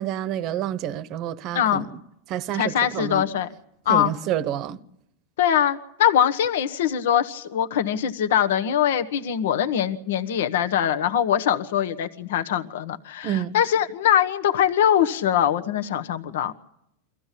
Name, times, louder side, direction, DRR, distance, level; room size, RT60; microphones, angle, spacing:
voice 1, 0.0-2.0 2.3-3.2 3.9-4.8 13.2-13.5, right 10 dB, 35° right, 0.9 m, -28 dB
voice 2, 1.5-1.9 2.5-3.5 3.8-4.1 5.4-16.5, left 10 dB, 75° left, 1.3 m, -22 dB
24.5 x 15.0 x 8.4 m
supercardioid pair, 155°, 0 cm